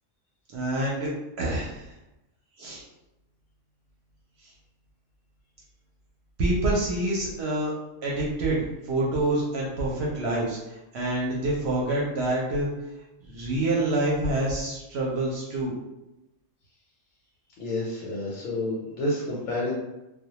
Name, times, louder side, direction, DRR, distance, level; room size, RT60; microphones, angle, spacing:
voice 1, 0.5-1.1 1.4-1.8 2.6-2.8 6.4-7.7 8.0-12.7 13.3-15.7, right 1 dB, 65° right, -4 dB, 0.7 m, -27 dB
voice 2, 17.6-19.7, left 1 dB, 90° left, -4 dB, 1.0 m, -29 dB
2.1 x 2.1 x 2.8 m, 0.95 s
omnidirectional pair, 1.3 m